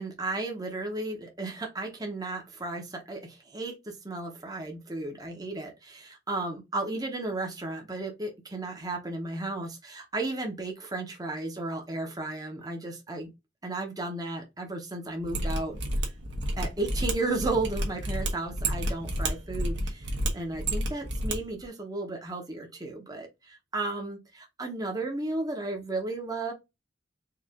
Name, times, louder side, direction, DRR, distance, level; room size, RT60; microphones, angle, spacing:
voice 1, 0.0-13.3 13.6-16.1 16.6-26.5, right 2 dB, 20° right, 1.0 m, -34 dB
Mechanisms, 15.2-21.4 21.6-21.7, right 1 dB, 75° right, 1.2 m, -30 dB
4.7 x 2.5 x 3.6 m
head